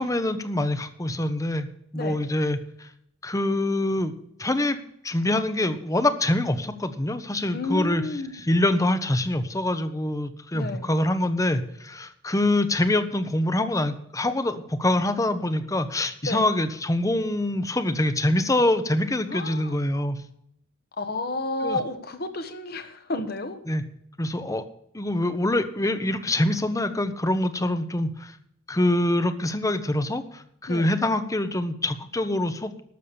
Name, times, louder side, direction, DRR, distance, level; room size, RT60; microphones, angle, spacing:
voice 1, 0.0-1.7 1.9-2.9 3.2-4.8 5.0-8.0 8.3-20.2 21.6-21.8 23.7-23.8 24.2-24.6 24.9-28.3 28.7-32.8, left 1 dB, 15° left, 11 dB, 0.8 m, -25 dB
voice 2, 7.5-8.4 10.5-10.9 16.2-16.4 19.3-19.8 21.0-23.6 30.7-30.9, left 2 dB, 50° left, 7 dB, 1.3 m, -31 dB
13.0 x 7.0 x 6.9 m, 0.73 s
head